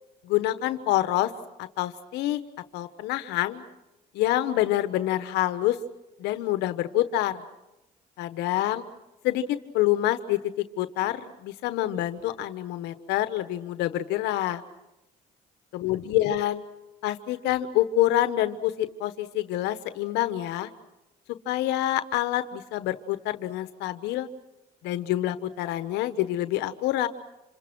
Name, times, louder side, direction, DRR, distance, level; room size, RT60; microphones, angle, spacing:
voice 1, 0.2-1.3 1.6-2.4 2.7-3.6 4.1-5.8 6.2-7.4 8.2-8.8 9.2-10.4 10.8-14.6 15.7-16.6 17.0-20.7 21.5-24.3 24.8-27.1, left 14 dB, 90° left, 11 dB, 1.2 m, -27 dB
28.0 x 27.0 x 6.2 m, 0.98 s
cardioid pair, 110°, 17 cm